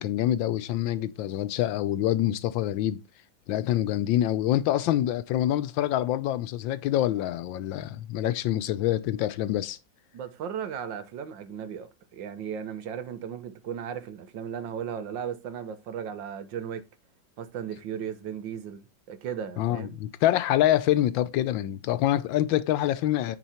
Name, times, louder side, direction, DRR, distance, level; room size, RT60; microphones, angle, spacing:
voice 1, 0.0-3.0 3.5-9.8 19.6-23.4, left 13 dB, 80° left, 1.3 m, -26 dB
voice 2, 10.1-16.8 17.4-20.0, right 8 dB, 70° right, 1.6 m, -36 dB
9.2 x 4.6 x 4.3 m
omnidirectional pair, 2.1 m